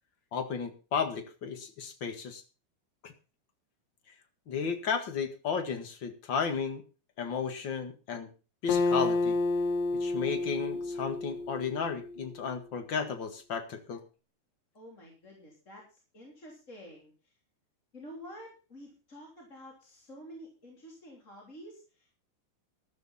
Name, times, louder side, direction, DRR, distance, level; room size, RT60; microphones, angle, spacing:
voice 1, 0.3-2.4 3.0-3.1 4.5-6.8 7.2-8.3 8.6-9.4 10.0-14.0, left 6 dB, 45° left, 7 dB, 1.6 m, -33 dB
Acoustic guitar, 8.7-12.3, left 3 dB, 70° left, 2.8 m, -30 dB
voice 2, 14.7-17.4 17.9-22.2, equal, 20° left, -1 dB, 3.5 m, -49 dB
13.5 x 12.5 x 4.2 m, 0.34 s
omnidirectional pair, 4.4 m